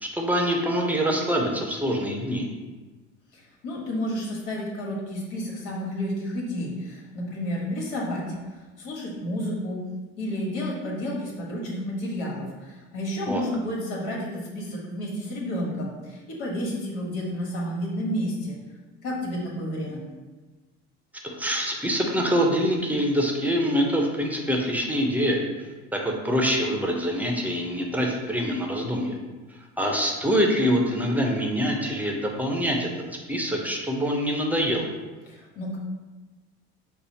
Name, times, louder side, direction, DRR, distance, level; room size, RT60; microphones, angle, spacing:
voice 1, 0.0-2.5 13.3-13.4 21.2-25.4 25.9-29.2 29.8-32.9 33.3-34.9, equal, 5° right, 0 dB, 0.8 m, -25 dB
voice 2, 3.3-8.3 8.8-9.8 10.2-18.6 19.0-20.0 35.3-35.8, equal, 75° left, -3 dB, 1.4 m, -31 dB
5.4 x 2.0 x 4.1 m, 1.3 s
supercardioid pair, 80°, 33 cm